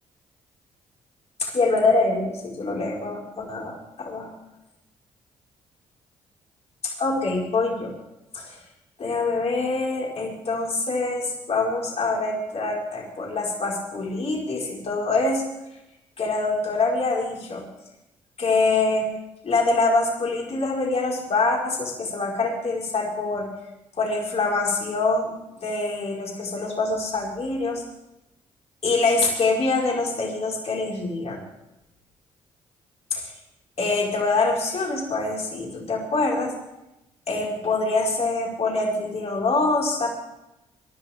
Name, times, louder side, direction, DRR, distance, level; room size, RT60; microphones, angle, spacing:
voice 1, 1.4-4.3 6.8-7.9 8.3-8.6 9.0-15.4 16.2-17.6 18.4-19.1 19.4-23.5 24.0-25.3 25.6-27.8 28.8-31.4 33.1-33.3 33.8-36.5 37.3-40.1, left 3 dB, 50° left, -3 dB, 5.2 m, -24 dB
24.0 x 12.0 x 3.7 m, 0.93 s
supercardioid pair, 55°, 14 cm